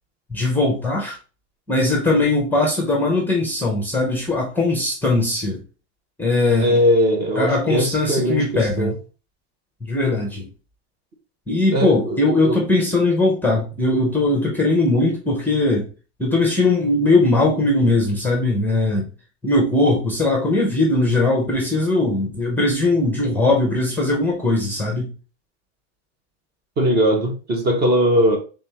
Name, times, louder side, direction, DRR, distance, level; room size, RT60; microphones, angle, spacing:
voice 1, 0.3-1.2 1.7-5.6 6.2-6.7 7.4-8.9 9.8-10.5 11.5-15.9 16.2-19.1 19.4-25.1, left 2 dB, 5° left, 0.6 m, -20 dB
voice 2, 6.6-8.9 11.7-12.6 26.8-28.4, equal, 30° right, 0.8 m, -19 dB
3.4 x 3.4 x 2.8 m
supercardioid pair, 155°, 35 cm